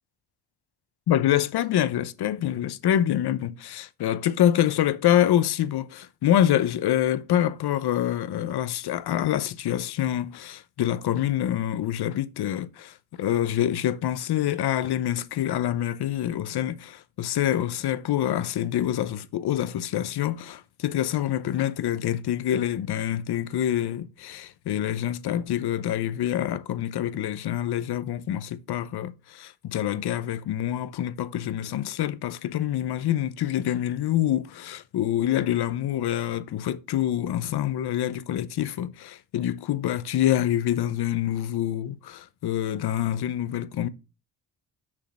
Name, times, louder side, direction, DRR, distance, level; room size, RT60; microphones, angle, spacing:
voice 1, 1.1-43.9, left 11 dB, 65° left, 0.8 m, -26 dB
6.5 x 6.3 x 4.2 m
cardioid pair, 110°, 42 cm